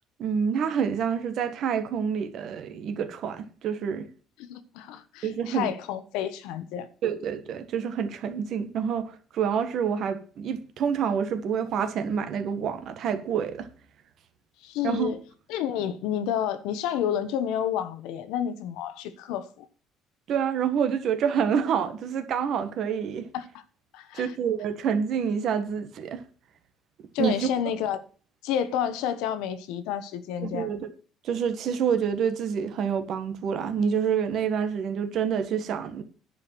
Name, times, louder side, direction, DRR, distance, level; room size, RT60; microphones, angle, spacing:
voice 1, 0.2-4.1 5.2-5.7 7.0-13.7 14.8-15.1 20.3-23.3 24.1-26.2 27.2-27.5 30.4-30.9 31.2-36.0, right 7 dB, 50° right, 1.5 m, -27 dB
voice 2, 4.4-6.9 14.6-15.2 15.5-19.7 23.3-23.4 23.9-24.4 27.1-28.0 28.4-30.7, left 9 dB, 85° left, 1.1 m, -30 dB
10.5 x 5.0 x 7.6 m
cardioid pair, 150°, 0 cm